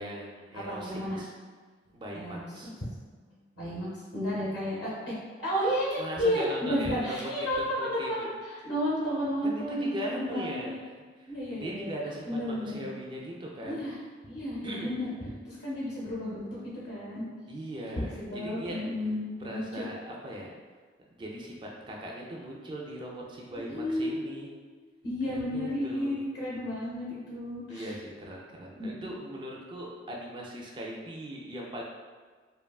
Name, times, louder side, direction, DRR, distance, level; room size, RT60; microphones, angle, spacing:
voice 1, 0.0-1.3 1.9-2.7 6.0-8.3 9.4-13.8 14.6-15.1 17.5-18.8 19.4-20.5 21.1-24.5 25.2-26.2 27.7-31.8, equal, 25° right, -2 dB, 0.3 m, -39 dB
voice 2, 0.6-1.2 2.1-2.7 3.3-5.1 5.4-10.7 11.3-11.9 12.3-12.8 13.6-13.9 14.2-15.1 15.4-16.5 16.8-17.2 18.0-19.2 19.5-19.8 23.5-24.3 25.0-27.9 28.7-29.0, equal, 60° left, -7 dB, 0.7 m, -32 dB
2.9 x 2.2 x 2.3 m, 1.5 s
head